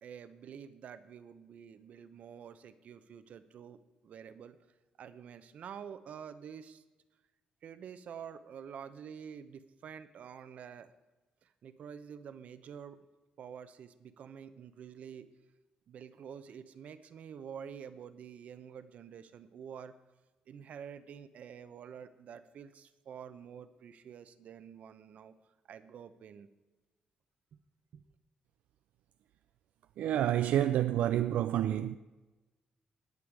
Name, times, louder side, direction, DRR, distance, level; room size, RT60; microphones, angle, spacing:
voice 1, 0.0-4.6 5.0-6.8 7.6-10.9 11.4-13.0 13.4-15.3 15.9-19.9 20.5-25.3 25.7-26.5 27.9-28.0, right 7 dB, 65° right, 0.9 m, -48 dB
voice 2, 30.0-32.0, right 11 dB, 90° right, 0.4 m, -28 dB
19.0 x 7.0 x 4.8 m
cardioid pair, 110°, 3 cm